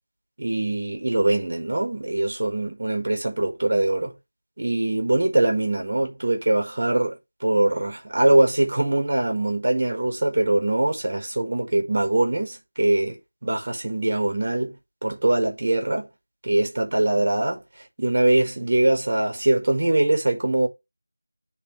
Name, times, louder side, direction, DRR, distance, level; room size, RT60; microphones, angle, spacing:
voice 1, 0.4-4.1 4.6-14.7 15.0-16.1 16.4-17.6 18.0-20.7, right 2 dB, 35° right, 1.7 m, -22 dB
10.0 x 3.5 x 3.2 m
figure-of-eight pair, 170°, 0 cm